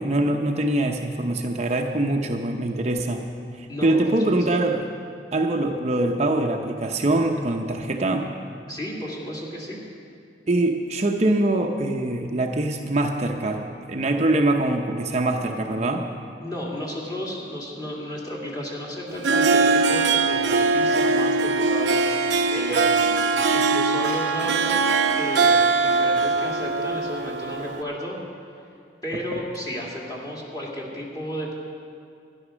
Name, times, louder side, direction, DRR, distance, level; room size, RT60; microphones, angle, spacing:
voice 1, 0.0-3.2 3.6-4.8 5.3-8.3 10.5-16.1 29.1-29.2, right 2 dB, 40° right, 3 dB, 0.7 m, -23 dB
voice 2, 3.7-4.0 4.3-4.6 8.7-9.8 16.4-22.0 22.5-23.1 23.5-28.2 29.0-31.5, equal, 25° left, -3 dB, 2.3 m, -33 dB
Harp, 19.1-27.8, right 4 dB, 80° right, 0.7 m, -21 dB
13.0 x 11.0 x 6.2 m, 2.4 s
head